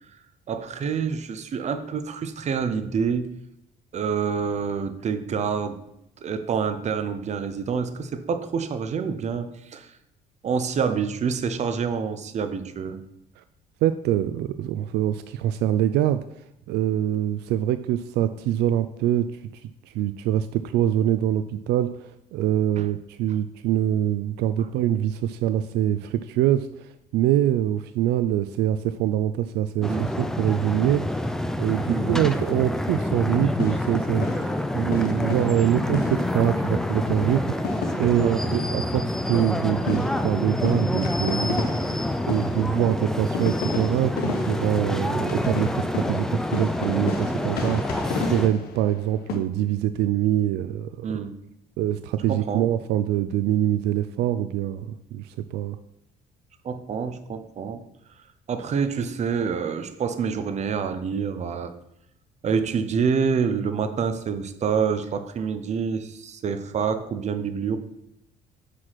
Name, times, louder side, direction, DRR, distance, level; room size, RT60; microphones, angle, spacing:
voice 1, 0.5-3.3 3.9-5.8 6.2-9.9 10.4-13.0 22.8-22.9 29.9-30.1 31.9-32.2 38.1-38.6 51.0-51.4 52.3-52.7 56.6-57.8 58.5-61.7 62.4-67.8, right 6 dB, 40° right, 9 dB, 0.8 m, -27 dB
voice 2, 13.8-16.2 16.7-21.9 22.3-31.3 31.6-34.5 34.7-42.0 42.3-47.8 48.3-51.1 51.8-55.8, right 11 dB, 85° right, 11 dB, 0.4 m, -24 dB
sound 1, 29.8-48.5, left 1 dB, 5° left, 0.4 m, -27 dB
sound 2, 32.2-33.2 33.6-36.7 37.0-37.2 37.6-49.4, left 3 dB, 70° left, 1.1 m, -33 dB
6.0 x 4.9 x 5.8 m, 0.79 s
cardioid pair, 110°, 17 cm